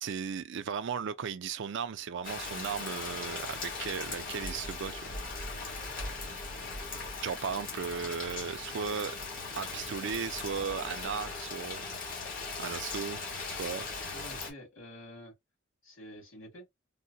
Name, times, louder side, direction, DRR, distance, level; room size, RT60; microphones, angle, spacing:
voice 1, 0.0-5.1 7.2-9.2 9.6-11.9 12.6-13.2 13.5-13.9, right 6 dB, 65° right, 0.4 m, -36 dB
Rain, 2.2-14.5, left 3 dB, 45° left, 1.3 m, -39 dB
voice 2, 14.1-15.3 15.8-16.7, equal, 80° left, 2.3 m, -48 dB
3.6 x 2.1 x 2.7 m
head